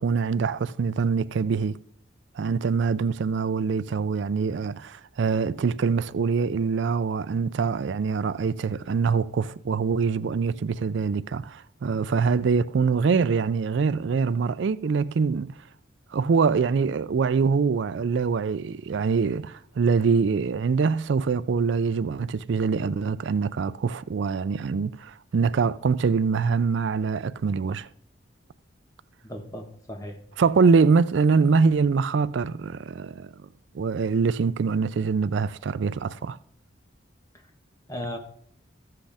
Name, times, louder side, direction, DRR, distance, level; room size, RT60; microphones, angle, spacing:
voice 1, 0.0-1.8 2.3-15.6 16.1-27.9 30.4-33.3 33.7-36.4, right 5 dB, 70° right, 0.4 m, -24 dB
voice 2, 29.2-30.2 37.9-38.2, left 1 dB, 20° left, 1.2 m, -36 dB
14.0 x 7.6 x 3.5 m
head